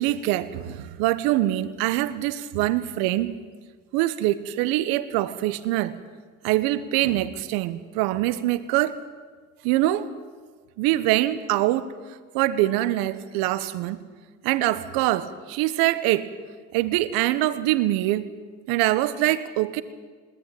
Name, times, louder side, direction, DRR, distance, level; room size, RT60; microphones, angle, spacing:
voice 1, 0.0-3.4 3.9-6.0 6.4-9.0 9.6-10.1 10.8-11.9 12.3-14.0 14.4-16.3 16.7-18.3 18.7-19.8, right 15 dB, 80° right, 14 dB, 1.2 m, -24 dB
20.5 x 17.5 x 9.2 m, 1.5 s
hypercardioid pair, 50°, 35 cm